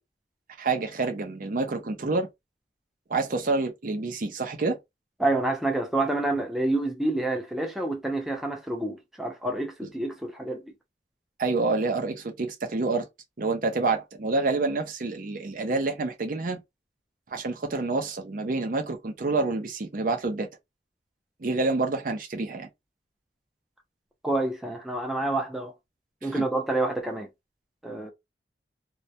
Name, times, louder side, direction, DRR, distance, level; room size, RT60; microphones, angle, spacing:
voice 1, 0.6-2.3 3.1-4.8 11.4-13.1 13.4-16.6 17.3-20.5 21.4-22.7 26.2-26.4, right 3 dB, 50° right, 0.5 m, -28 dB
voice 2, 5.2-10.7 24.2-25.7 26.2-27.3 27.8-28.1, right 2 dB, ahead, 0.4 m, -28 dB
2.2 x 2.1 x 2.7 m
head